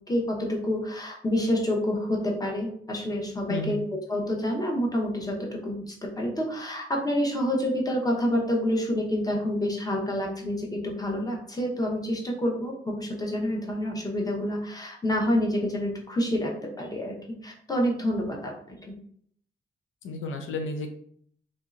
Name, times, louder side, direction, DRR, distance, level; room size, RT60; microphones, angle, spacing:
voice 1, 0.1-3.8 4.1-17.1 17.4-18.9, equal, 20° left, -1 dB, 0.9 m, -28 dB
voice 2, 3.5-3.8 20.0-20.9, left 2 dB, 85° left, 5 dB, 0.6 m, -32 dB
3.1 x 2.7 x 2.4 m, 0.64 s
cardioid pair, 70°, 20 cm